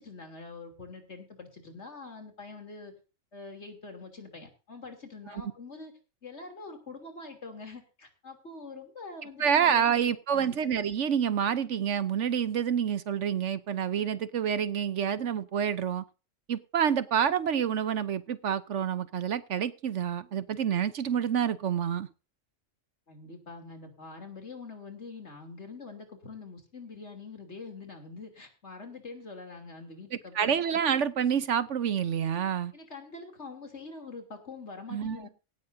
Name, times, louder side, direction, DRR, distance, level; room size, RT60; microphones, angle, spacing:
voice 1, 0.0-2.9 3.3-5.9 6.2-9.9 10.3-10.6 23.1-30.6 32.7-35.3, left 4 dB, 60° left, 3.4 m, -44 dB
voice 2, 9.4-16.0 16.5-22.1 30.3-32.7 34.9-35.3, right 8 dB, 65° right, 1.1 m, -28 dB
17.5 x 13.5 x 2.7 m
omnidirectional pair, 1.3 m